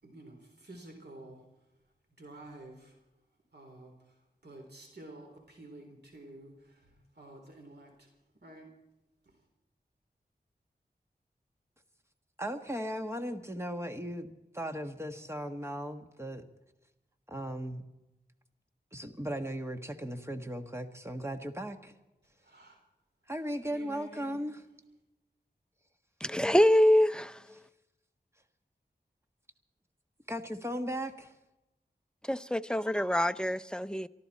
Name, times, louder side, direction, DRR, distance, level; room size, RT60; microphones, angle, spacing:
voice 1, 0.0-1.4 2.2-2.9 3.5-3.9 4.4-6.5 7.2-7.9 8.4-8.7 22.5-22.8 23.7-24.4, right 1 dB, 75° right, 3 dB, 3.7 m, -50 dB
voice 2, 12.4-16.4 17.3-17.8 18.9-21.9 23.3-24.6 30.3-31.3, equal, 15° right, 6 dB, 1.6 m, -37 dB
voice 3, 26.2-27.4 32.3-34.1, left 1 dB, 5° left, 12 dB, 0.5 m, -25 dB
24.0 x 14.0 x 4.3 m, 0.99 s
wide cardioid pair, 75°, 17 cm